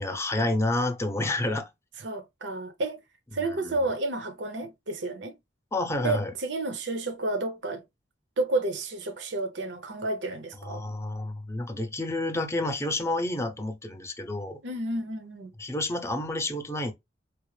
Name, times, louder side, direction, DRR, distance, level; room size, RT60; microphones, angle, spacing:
voice 1, 0.0-1.7 3.4-3.8 5.7-6.3 10.6-14.6 15.6-16.9, left 2 dB, 15° left, 0.7 m, -29 dB
voice 2, 2.0-3.0 3.3-5.4 6.0-7.8 8.4-10.8 14.6-15.5, right 2 dB, 70° right, 0.7 m, -31 dB
4.6 x 2.0 x 3.1 m
head